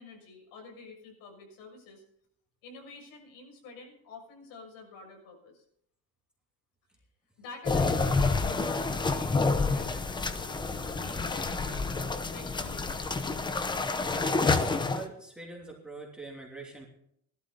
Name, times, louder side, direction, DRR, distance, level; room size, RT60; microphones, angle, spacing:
voice 1, 0.0-2.0 2.6-5.6 7.4-13.3, left 3 dB, 80° left, 2 dB, 6.7 m, -48 dB
sound 1, 7.6-15.0, left 3 dB, 15° left, 0.8 m, -28 dB
voice 2, 14.9-16.9, right 3 dB, 5° right, -3 dB, 3.0 m, -43 dB
18.0 x 12.5 x 4.1 m, 0.70 s
cardioid pair, 175°, 34 cm